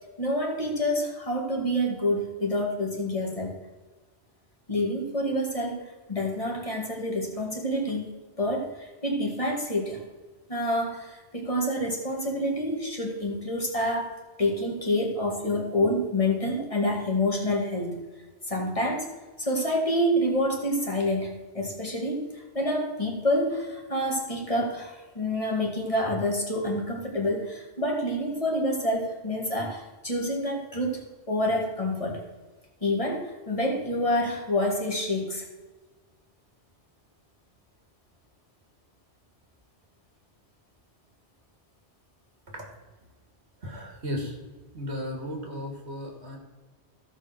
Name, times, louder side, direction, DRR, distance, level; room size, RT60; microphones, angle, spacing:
voice 1, 0.2-3.6 4.7-5.8 6.1-8.1 8.4-10.0 10.5-18.0 18.5-19.1 19.4-31.0 31.3-32.2 32.8-35.5, left 1 dB, 30° left, -1 dB, 2.3 m, -27 dB
voice 2, 43.6-44.4 44.7-46.4, left 1 dB, 80° right, 1 dB, 2.5 m, -35 dB
15.0 x 5.4 x 6.4 m, 1.3 s
omnidirectional pair, 1.1 m